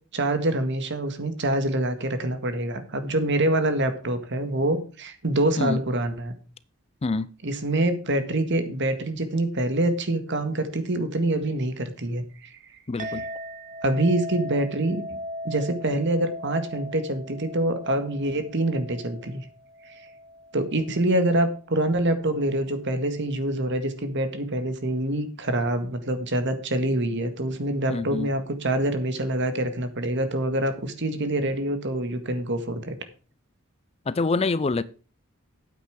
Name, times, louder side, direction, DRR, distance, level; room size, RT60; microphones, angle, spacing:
voice 1, 0.1-6.3 7.4-12.5 13.0-13.1 13.8-15.2 15.4-19.4 19.9-20.0 20.5-33.0, right 1 dB, 55° right, 1.8 m, -25 dB
voice 2, 7.0-7.3 12.9-13.2 27.9-28.3 34.1-34.8, left 3 dB, 30° left, 0.4 m, -26 dB
Chink clink, 13.0-21.7, equal, 35° right, 1.1 m, -39 dB
9.4 x 8.5 x 4.7 m
head